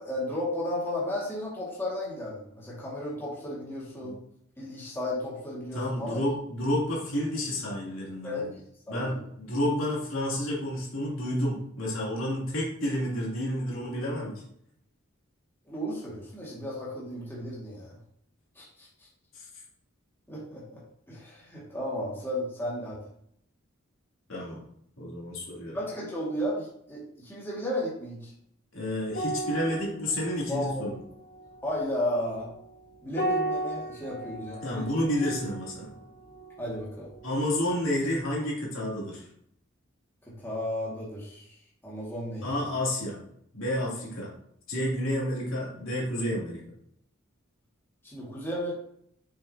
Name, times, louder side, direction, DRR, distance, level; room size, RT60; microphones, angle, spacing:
voice 1, 0.0-4.2 4.6-6.2 8.2-8.5 8.9-9.2 15.7-18.0 18.6-18.9 20.3-20.8 21.1-23.0 25.7-28.3 30.5-30.9 31.6-32.5 33.0-34.9 36.6-37.1 40.4-41.5 41.8-42.4 48.0-48.7, left 1 dB, 10° left, -6 dB, 2.0 m, -34 dB
voice 2, 5.7-8.5 8.9-14.4 19.3-19.4 24.3-24.6 25.0-25.8 28.7-31.0 34.6-35.9 37.2-39.2 42.4-43.2 43.5-44.3 44.7-46.6, left 1 dB, 70° left, -5 dB, 2.9 m, -30 dB
sound 1, 29.1-37.8 38.1-38.3, right 1 dB, 50° left, 1.6 m, -36 dB
6.8 x 6.5 x 2.8 m, 0.69 s
head